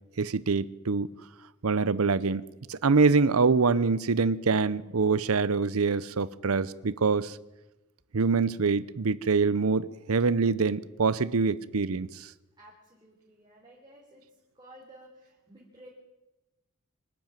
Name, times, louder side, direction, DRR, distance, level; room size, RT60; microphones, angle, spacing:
voice 1, 0.2-1.1 1.6-2.4 2.7-7.4 8.1-12.1, right 4 dB, 75° right, 18 dB, 0.7 m, -25 dB
voice 2, 12.6-14.2 14.6-15.9, right 1 dB, 20° right, -3 dB, 3.6 m, -53 dB
24.5 x 12.5 x 9.0 m, 1.0 s
head